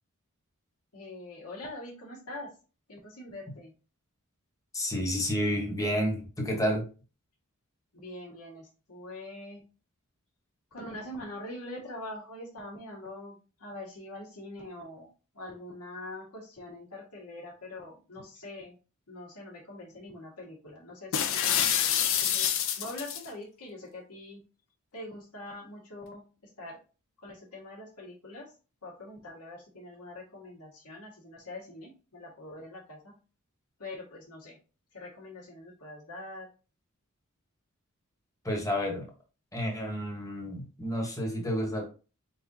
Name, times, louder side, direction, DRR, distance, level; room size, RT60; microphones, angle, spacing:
voice 1, 0.9-2.5 2.9-3.7 7.9-9.6 10.7-15.1 15.3-18.8 19.1-21.6 22.1-24.4 24.9-26.2 26.6-26.8 27.2-28.5 28.8-33.1 33.8-34.6 34.9-36.5, left 1 dB, 85° left, -2 dB, 1.8 m, -43 dB
voice 2, 4.7-6.8 38.4-39.1 39.5-41.9, equal, 15° left, 0 dB, 1.1 m, -30 dB
sound 1, 21.1-23.3, left 9 dB, 60° left, 0.5 m, -27 dB
4.5 x 3.9 x 2.7 m, 0.34 s
head